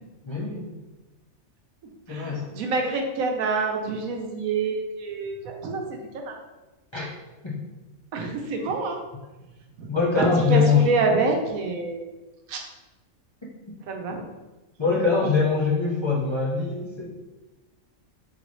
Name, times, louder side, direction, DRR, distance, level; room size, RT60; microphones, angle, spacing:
voice 1, 0.3-0.7 2.1-2.4 6.9-7.1 7.4-7.6 9.9-10.9 14.8-17.2, left 5 dB, 30° left, -6 dB, 0.6 m, -23 dB
voice 2, 2.1-6.3 8.1-9.0 9.8-9.9 10.2-12.1 12.5-12.7 13.8-14.2, right 3 dB, 80° right, 3 dB, 1.1 m, -27 dB
3.9 x 3.9 x 3.1 m, 1.1 s
omnidirectional pair, 1.5 m